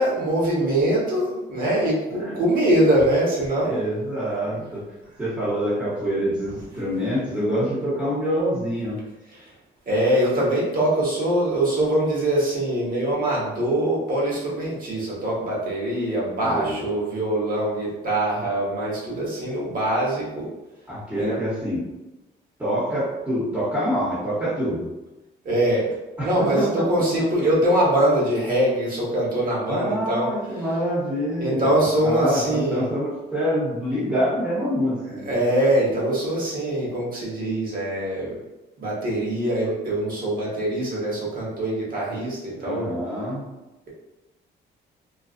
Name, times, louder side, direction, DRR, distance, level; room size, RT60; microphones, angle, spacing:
voice 1, 0.0-3.8 9.4-9.5 9.9-20.5 21.1-21.4 25.4-30.3 31.4-32.9 35.2-38.4 38.8-42.9, right 1 dB, 45° right, -5 dB, 1.2 m, -23 dB
voice 2, 3.6-4.9 5.2-9.0 16.4-16.8 20.9-21.9 22.6-24.9 26.2-27.3 29.7-35.4 42.6-43.6, equal, 10° right, -13 dB, 1.1 m, -26 dB
2.5 x 2.4 x 2.4 m, 1.0 s
cardioid pair, 90°, 20 cm